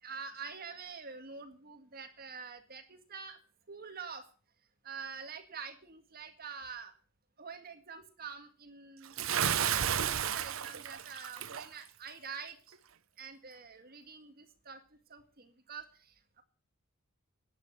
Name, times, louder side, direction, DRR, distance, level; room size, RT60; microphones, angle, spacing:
voice 1, 0.0-3.4 3.7-4.3 4.8-6.9 7.4-9.1 9.6-12.8 13.2-14.8 15.1-16.4, right 5 dB, 45° right, 7 dB, 1.9 m, -46 dB
Bathtub (filling or washing) / Splash splatter, 9.2-11.7, right 9 dB, 65° right, 0.7 m, -32 dB
11.5 x 9.4 x 8.6 m, 0.40 s
head